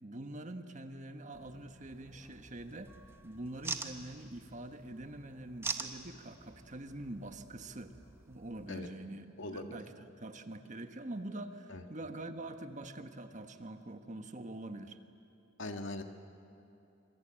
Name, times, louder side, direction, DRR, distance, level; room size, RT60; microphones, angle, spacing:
voice 1, 0.0-3.0 3.2-8.0 8.3-15.0, right 1 dB, 40° right, 7 dB, 1.4 m, -45 dB
sound 1, 1.3-8.7, right 3 dB, 15° right, 1.3 m, -45 dB
voice 2, 9.4-9.8 11.7-11.8 15.6-16.0, left 2 dB, 80° left, 5 dB, 1.9 m, -40 dB
26.5 x 24.5 x 8.9 m, 2.9 s
head